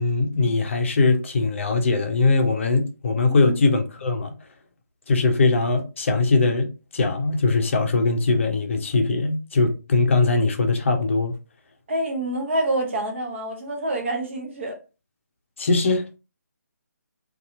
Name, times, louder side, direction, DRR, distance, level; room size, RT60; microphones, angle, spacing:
voice 1, 0.0-4.3 5.1-11.3 15.6-16.2, left 3 dB, 45° left, 0.6 m, -21 dB
voice 2, 3.3-3.6 11.9-14.8, right 1 dB, 40° right, 0.7 m, -27 dB
2.7 x 2.3 x 2.6 m
figure-of-eight pair, 150°, 10 cm